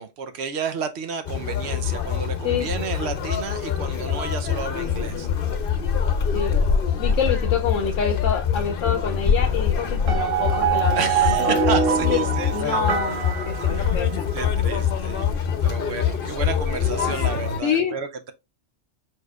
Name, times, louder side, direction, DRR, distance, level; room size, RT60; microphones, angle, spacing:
voice 1, 0.0-5.3 10.9-12.8 13.7-13.9 14.3-15.2 15.6-18.3, right 6 dB, 65° right, 0.9 m, -31 dB
Conversation, 1.2-17.6, left 7 dB, 50° left, 0.9 m, -24 dB
voice 2, 7.0-11.6 12.0-12.2 12.5-14.3 17.6-17.9, left 7 dB, 80° left, 1.0 m, -27 dB
sound 1, 10.1-14.4, right 7 dB, 85° right, 1.3 m, -24 dB
4.8 x 4.5 x 2.3 m
omnidirectional pair, 1.3 m